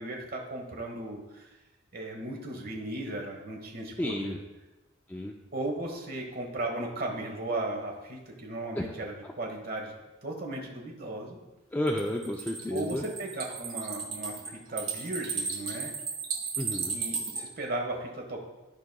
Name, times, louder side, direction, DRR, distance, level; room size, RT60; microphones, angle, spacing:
voice 1, 0.0-1.5 1.9-4.3 5.5-9.9 10.2-11.4 12.7-15.9 16.9-18.4, right 2 dB, 50° right, 1 dB, 1.3 m, -36 dB
voice 2, 4.0-4.4 5.1-5.3 8.7-8.9 9.2-9.3 11.7-13.0 16.6-17.0, left 1 dB, 10° left, 1 dB, 0.4 m, -31 dB
sound 1, 11.9-17.4, right 5 dB, 75° right, 1.4 m, -34 dB
12.5 x 4.9 x 2.3 m, 1.1 s
head